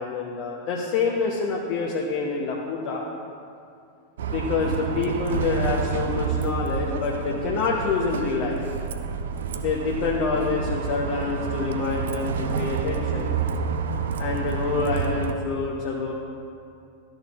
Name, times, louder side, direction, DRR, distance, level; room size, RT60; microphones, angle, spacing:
voice 1, 0.0-3.0 4.3-8.6 9.5-13.3 14.2-16.1, left 4 dB, 45° left, -2 dB, 0.8 m, -27 dB
Bus, 4.2-15.3, right 5 dB, 60° right, 0.4 m, -28 dB
12.5 x 6.4 x 2.4 m, 2.4 s
figure-of-eight pair, 90°, 0 cm